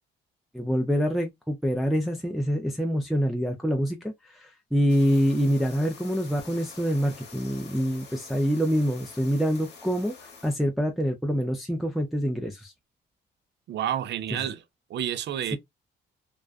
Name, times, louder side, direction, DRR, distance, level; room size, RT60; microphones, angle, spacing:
voice 1, 0.5-12.7, equal, ahead, 0.4 m, -26 dB
sound 1, 4.9-10.6, left 5 dB, 60° left, 1.0 m, -47 dB
voice 2, 13.7-14.6 14.9-15.6, right 10 dB, 65° right, 0.5 m, -29 dB
2.4 x 2.2 x 2.3 m
cardioid pair, 90°, 20 cm